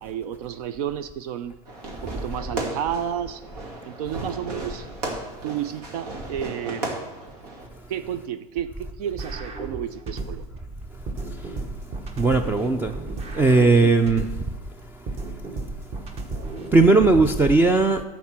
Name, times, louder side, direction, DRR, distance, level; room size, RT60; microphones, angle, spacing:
voice 1, 0.0-1.5 2.0-3.4 3.8-4.9 5.4-6.9 7.9-10.4 13.8-13.9, right 9 dB, 70° right, 12 dB, 0.6 m, -31 dB
Fireworks, 1.6-7.7, right 2 dB, 85° right, 2.5 m, -35 dB
sound 1, 9.2-10.6 11.1-14.6 15.1-17.2, right 2 dB, 30° right, 1.2 m, -34 dB
voice 2, 12.2-13.0 13.3-14.3 16.7-18.0, right 3 dB, 10° right, 7 dB, 0.4 m, -17 dB
11.5 x 4.2 x 7.3 m, 1.1 s
supercardioid pair, 125°, 20 cm